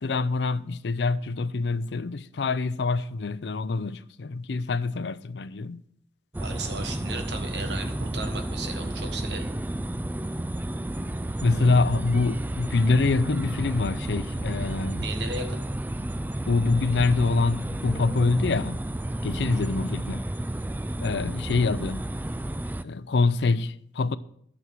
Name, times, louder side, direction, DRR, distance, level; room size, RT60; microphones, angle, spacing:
voice 1, 0.0-5.8 11.4-15.1 16.5-18.8 19.2-20.3 21.0-22.1 22.8-24.2, left 3 dB, 70° left, 0.5 m, -25 dB
sound 1, 6.3-22.8, right 1 dB, 10° right, 0.3 m, -31 dB
voice 2, 6.4-9.5 11.5-11.8 15.0-15.6, right 3 dB, 70° right, 1.6 m, -35 dB
sound 2, 11.9-18.2, equal, 45° right, 2.4 m, -50 dB
11.0 x 6.3 x 7.3 m
head